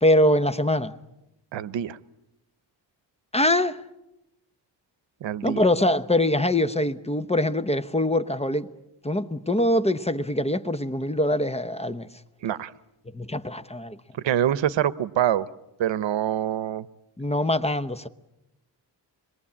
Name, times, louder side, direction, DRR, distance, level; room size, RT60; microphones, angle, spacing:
voice 1, 0.0-0.9 3.3-3.8 5.4-8.7 9.0-12.1 13.1-14.0 17.2-18.1, left 1 dB, 15° left, 0.9 m, -23 dB
voice 2, 1.5-2.0 5.2-5.6 12.4-12.7 14.2-15.5 15.8-16.9, right 10 dB, 85° right, 0.9 m, -25 dB
26.5 x 22.0 x 8.6 m
wide cardioid pair, 105°, 44 cm